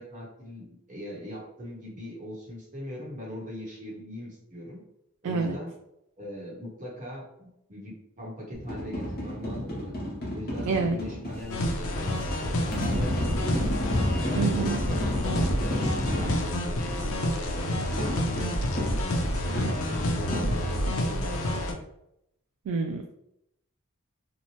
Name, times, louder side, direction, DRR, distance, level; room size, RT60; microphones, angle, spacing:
voice 1, 0.0-4.8 5.2-5.7 6.2-10.0 10.3-13.7 14.2-17.0 17.3-18.6 19.0-21.8, equal, 35° right, -5 dB, 0.9 m, -40 dB
voice 2, 5.2-5.6 10.7-11.0 14.3-14.8 22.7-23.1, right 4 dB, 90° right, 3 dB, 0.3 m, -27 dB
sound 1, 8.5-11.4 12.7-16.4 18.0-21.0, left 1 dB, 45° left, 0.9 m, -31 dB
sound 2, 11.2-17.2, equal, 5° left, 1.1 m, -42 dB
sound 3, 11.5-21.7, equal, 70° left, 0.5 m, -29 dB
2.8 x 2.1 x 2.9 m, 0.80 s
head